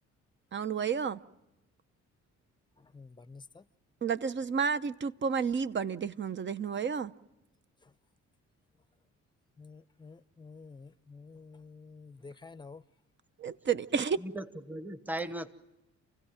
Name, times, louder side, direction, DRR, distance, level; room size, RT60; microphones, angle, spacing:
voice 1, 0.5-1.2 4.0-7.1 13.4-14.2, right 6 dB, 40° right, 0.8 m, -31 dB
voice 2, 2.8-3.7 7.8-7.9 9.6-12.8, left 4 dB, 15° left, 0.8 m, -50 dB
voice 3, 14.2-15.5, right 1 dB, 5° right, 1.2 m, -37 dB
28.5 x 16.0 x 8.9 m
cardioid pair, 90°, 30 cm